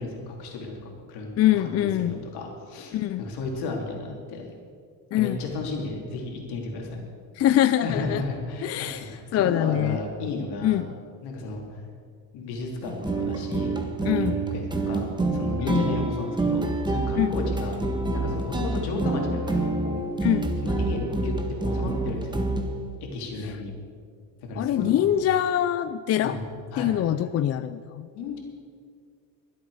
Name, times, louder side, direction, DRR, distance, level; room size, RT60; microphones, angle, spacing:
voice 1, 0.0-4.5 5.1-7.0 7.8-10.8 11.2-11.8 12.3-17.8 18.1-20.0 20.6-22.4 23.0-23.7 24.4-25.2 26.2-26.9 28.1-28.4, left 3 dB, 70° left, 0 dB, 3.3 m, -34 dB
voice 2, 1.4-2.2 2.9-3.3 5.1-5.4 7.4-8.2 8.6-10.0 10.6-10.9 14.1-14.4 15.6-15.8 17.2-17.4 20.2-20.5 24.6-26.4 26.8-28.1, left 11 dB, 40° left, 12 dB, 0.5 m, -24 dB
sound 1, 12.8-22.9, right 2 dB, 10° right, 1.5 m, -27 dB
23.0 x 8.2 x 5.0 m, 2.2 s
cardioid pair, 110°, 40 cm